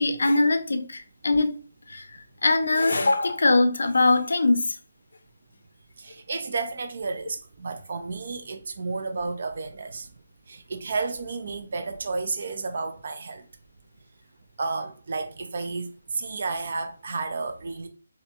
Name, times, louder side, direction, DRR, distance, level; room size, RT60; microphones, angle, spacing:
voice 1, 0.0-1.6 1.9-2.1 2.4-4.8, left 2 dB, 75° left, 0.4 m, -22 dB
voice 2, 6.0-10.1 10.5-13.5 14.6-17.9, right 4 dB, 45° right, 0.3 m, -32 dB
2.5 x 2.1 x 2.8 m
hypercardioid pair, 175°, 0 cm